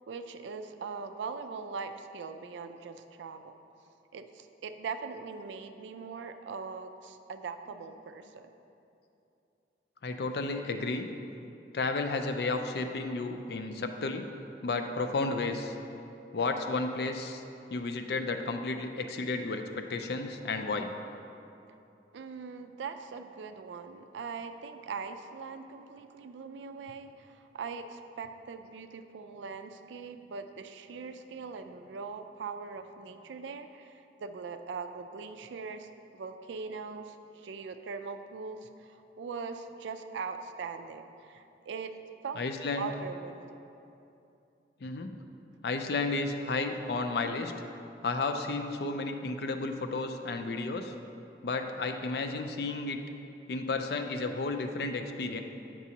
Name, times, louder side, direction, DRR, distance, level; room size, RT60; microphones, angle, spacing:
voice 1, 0.1-3.5 4.1-8.5 22.1-41.9 42.2-42.4 42.8-43.6, right 5 dB, 80° right, 8 dB, 0.4 m, -41 dB
voice 2, 10.0-11.1 11.7-14.3 14.6-15.7 16.3-17.4 17.7-20.9 42.3-43.0 44.8-45.2 45.6-47.5 48.0-50.9 51.4-53.0 53.5-55.4, left 3 dB, 60° left, 6 dB, 0.4 m, -32 dB
7.9 x 6.0 x 2.8 m, 2.8 s
head